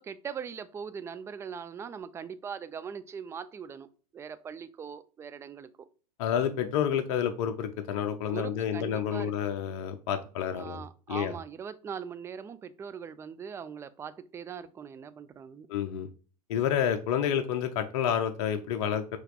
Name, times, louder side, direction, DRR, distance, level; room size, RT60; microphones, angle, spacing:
voice 1, 0.0-5.9 8.3-9.3 10.6-15.7, right 7 dB, 15° right, 14 dB, 0.3 m, -41 dB
voice 2, 6.2-10.8 11.1-11.3 15.7-16.1 16.5-19.2, left 9 dB, 50° left, 7 dB, 0.5 m, -29 dB
5.6 x 2.9 x 2.4 m, 0.38 s
figure-of-eight pair, 85°, 20 cm